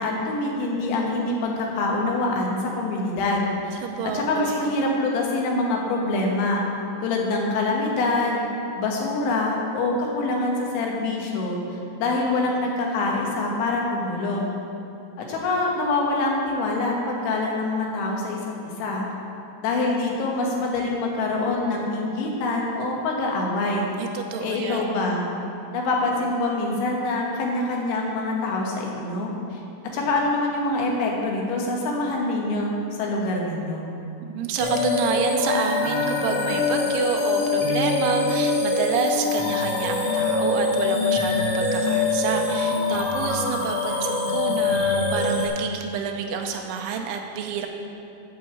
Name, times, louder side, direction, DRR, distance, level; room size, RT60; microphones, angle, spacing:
voice 1, 0.0-6.6 7.0-8.4 8.8-14.5 15.2-18.4 18.8-19.0 19.6-23.9 24.4-25.2 25.7-29.6 29.9-33.9, left 2 dB, 80° left, -1 dB, 3.7 m, -25 dB
voice 2, 3.8-4.7 24.0-25.0 34.3-47.7, right 6 dB, 85° right, 3 dB, 3.1 m, -29 dB
sound 1, 34.6-45.5, left 3 dB, 60° left, 1.7 m, -24 dB
8.7 x 5.7 x 7.5 m, 2.6 s
omnidirectional pair, 5.4 m